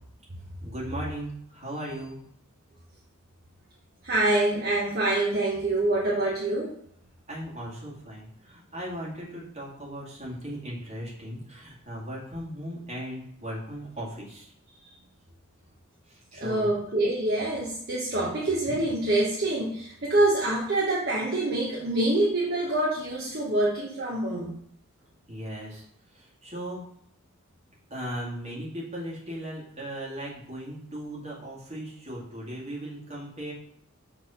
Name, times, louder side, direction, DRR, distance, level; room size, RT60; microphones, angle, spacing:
voice 1, 0.6-2.2 7.3-15.0 16.1-16.7 25.3-25.8 26.1-26.8 27.9-33.5, equal, 30° right, -5 dB, 2.2 m, -37 dB
voice 2, 4.0-6.7 16.4-24.5, right 2 dB, 50° right, -5 dB, 1.1 m, -26 dB
6.2 x 3.6 x 5.7 m, 0.69 s
head